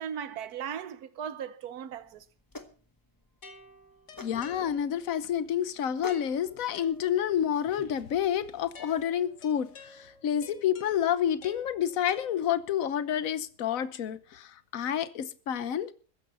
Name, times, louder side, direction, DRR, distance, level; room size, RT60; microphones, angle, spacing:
voice 1, 0.0-2.3, right 8 dB, 70° right, 1.5 m, -37 dB
sound 1, 1.9-8.0, left 2 dB, 15° left, 0.8 m, -48 dB
sound 2, 3.4-5.2 6.1-7.5 8.7-12.9, left 4 dB, 90° left, 3.0 m, -52 dB
voice 2, 4.2-15.9, left 9 dB, 60° left, 1.3 m, -29 dB
14.5 x 11.0 x 5.4 m
omnidirectional pair, 1.7 m